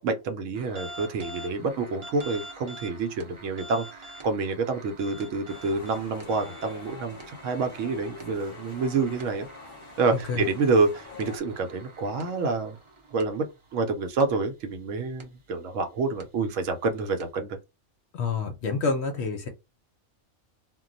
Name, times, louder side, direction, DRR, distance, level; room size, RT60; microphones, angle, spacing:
voice 1, 0.0-9.5 10.0-12.8 13.1-13.5 13.7-17.6, right 4 dB, 70° right, 0.9 m, -28 dB
sound 1, 0.6-13.8 14.2-14.4 15.2-15.3 16.1-16.3 17.2-17.3, right 1 dB, 35° right, 0.5 m, -46 dB
sound 2, 5.5-11.4, left 4 dB, 40° left, 0.9 m, -45 dB
voice 2, 10.1-10.5 18.1-19.5, left 4 dB, 65° left, 0.8 m, -28 dB
2.3 x 2.2 x 3.8 m
omnidirectional pair, 1.4 m